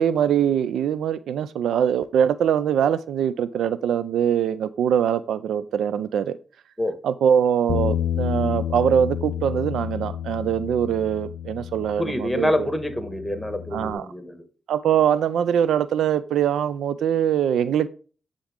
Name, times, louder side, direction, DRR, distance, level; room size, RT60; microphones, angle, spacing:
voice 1, 0.0-6.4 7.0-12.7 13.7-14.1 14.7-17.9, right 9 dB, 85° right, 0.3 m, -22 dB
Bass guitar, 7.7-13.9, left 10 dB, 85° left, 0.4 m, -30 dB
voice 2, 12.0-14.4, left 1 dB, 10° left, 1.7 m, -26 dB
10.0 x 3.7 x 3.6 m
supercardioid pair, 55°, 0 cm